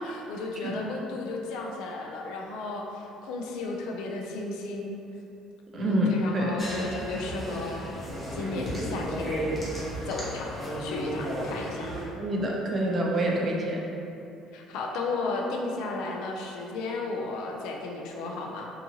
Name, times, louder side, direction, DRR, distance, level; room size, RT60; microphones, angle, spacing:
voice 1, 0.0-4.9 5.7-7.8 8.3-9.5 10.0-10.5 10.8-11.9 14.5-18.7, left 3 dB, 80° left, 1 dB, 0.3 m, -34 dB
voice 2, 5.7-6.1 6.3-6.5 12.1-13.8, right 1 dB, 40° right, -1 dB, 0.5 m, -27 dB
sound 1, 6.6-12.0, equal, 20° left, 0.7 m, -34 dB
2.7 x 2.3 x 2.8 m, 2.7 s
supercardioid pair, 95°, 0 cm